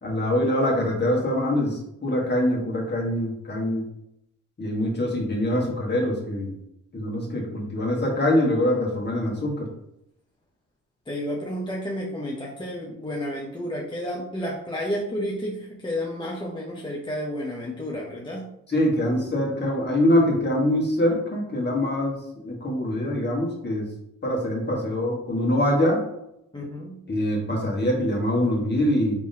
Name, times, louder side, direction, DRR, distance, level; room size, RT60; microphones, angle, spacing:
voice 1, 0.0-3.8 4.6-6.5 6.9-9.7 18.7-23.9 24.2-26.0 27.1-29.2, left 1 dB, 30° left, -2 dB, 1.3 m, -24 dB
voice 2, 11.1-18.4 26.5-27.0, equal, 15° left, -3 dB, 0.6 m, -31 dB
3.7 x 2.9 x 2.7 m, 0.80 s
cardioid pair, 65°, 33 cm